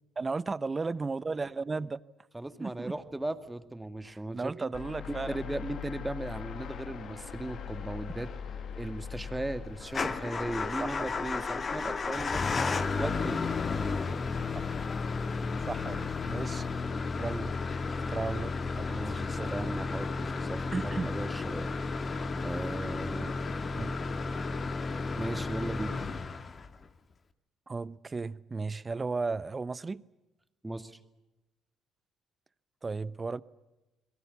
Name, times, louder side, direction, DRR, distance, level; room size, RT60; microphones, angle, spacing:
voice 1, 0.2-2.0 2.6-2.9 4.0-5.4 10.8-11.1 14.5-14.7 15.6-16.7 17.2-17.5 18.1-19.7 20.7-21.1 23.8-24.0 27.7-30.0 32.8-33.4, right 4 dB, 30° right, 1.0 m, -35 dB
voice 2, 2.3-4.7 5.1-8.3 8.8-13.4 18.9-21.7 22.4-23.4 25.2-26.0 30.6-31.0, right 1 dB, 10° right, 2.2 m, -37 dB
sound 1, 4.7-24.4, left 7 dB, 55° left, 2.4 m, -45 dB
Motor vehicle (road) / Engine starting / Idling, 9.9-26.8, left 4 dB, 40° left, 2.0 m, -33 dB
29.0 x 22.5 x 7.1 m
hypercardioid pair, 55°, 0 cm